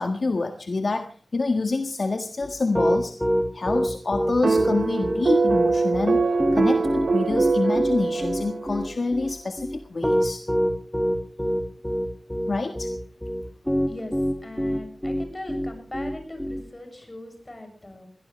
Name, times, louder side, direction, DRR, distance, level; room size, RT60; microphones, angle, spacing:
voice 1, 0.0-3.2 3.5-6.2 6.5-10.4 12.5-12.9, left 3 dB, 60° left, 5 dB, 1.6 m, -27 dB
Piano, 2.4-16.6, equal, 5° left, 2.6 m, -25 dB
sound 1, 4.4-8.9, right 3 dB, 75° right, 2.5 m, -22 dB
voice 2, 14.4-18.1, left 1 dB, 25° left, 5 dB, 7.3 m, -39 dB
22.5 x 17.0 x 3.4 m, 0.39 s
wide cardioid pair, 80°, 0 cm